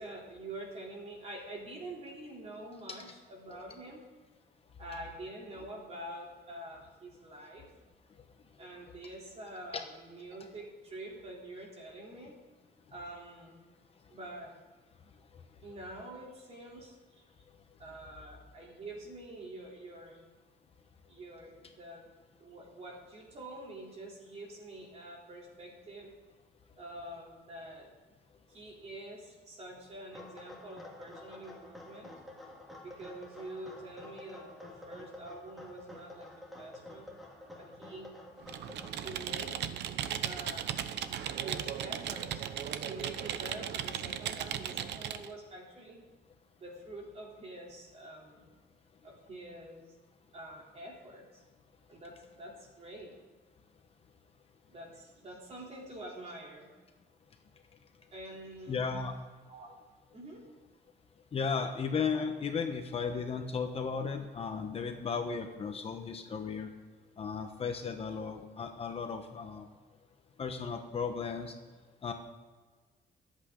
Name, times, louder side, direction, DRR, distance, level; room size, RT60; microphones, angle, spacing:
voice 1, 0.0-4.1 4.8-7.7 8.6-12.3 12.9-13.6 14.1-14.5 15.6-17.2 17.8-20.3 21.1-22.1 22.4-26.1 26.8-27.9 28.5-32.1 32.8-37.1 37.6-38.1 39.0-39.6 40.2-40.8 41.4-42.5 42.9-46.0 46.6-48.5 49.0-49.9 50.3-51.4 51.9-53.1 54.7-56.7 58.1-58.9 59.5-59.7 60.1-60.4, right 1 dB, 35° right, -1 dB, 3.4 m, -46 dB
sound 1, 30.1-38.9, left 1 dB, ahead, 2.1 m, -50 dB
Computer keyboard, 38.4-45.3, right 10 dB, 85° right, 0.8 m, -37 dB
voice 2, 58.7-59.1 61.3-66.7 67.2-69.7 70.4-71.5 72.0-72.1, left 5 dB, 35° left, 5 dB, 1.0 m, -35 dB
24.5 x 8.4 x 3.8 m, 1.4 s
cardioid pair, 175°, 17 cm